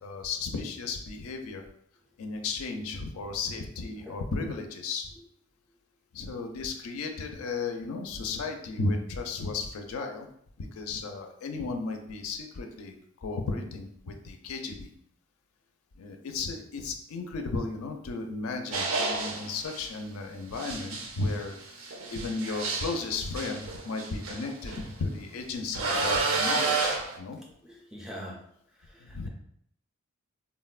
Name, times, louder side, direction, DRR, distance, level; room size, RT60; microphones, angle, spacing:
voice 1, 0.0-1.6 2.2-5.1 6.1-10.3 10.6-14.9 16.0-27.4 29.0-29.3, left 3 dB, 85° left, 5 dB, 0.4 m, -34 dB
sound 1, 18.7-19.9 20.6-24.8 25.7-27.2, right 4 dB, 70° right, 0.4 m, -30 dB
voice 2, 27.6-28.4 28.8-29.3, equal, 5° right, -1 dB, 0.3 m, -43 dB
3.7 x 2.1 x 2.3 m, 0.70 s
head